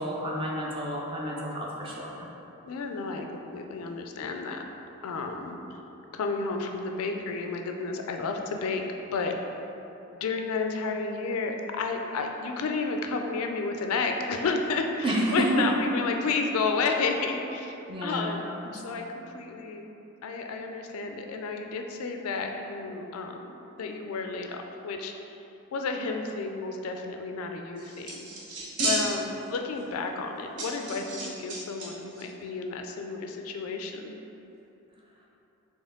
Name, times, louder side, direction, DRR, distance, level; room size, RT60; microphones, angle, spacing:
voice 1, 0.0-2.3 15.0-15.6 17.9-18.4, right 1 dB, 25° right, -3 dB, 0.5 m, -30 dB
voice 2, 2.7-4.6 5.0-5.6 6.1-8.8 9.1-9.3 10.1-19.9 20.2-23.5 23.8-25.1 25.7-28.3 28.8-34.2, left 4 dB, 75° left, 4 dB, 0.4 m, -31 dB
sound 1, 27.8-29.4 29.8-29.9 30.6-32.2, right 2 dB, 85° right, 0.9 m, -32 dB
4.4 x 3.0 x 3.5 m, 3.0 s
head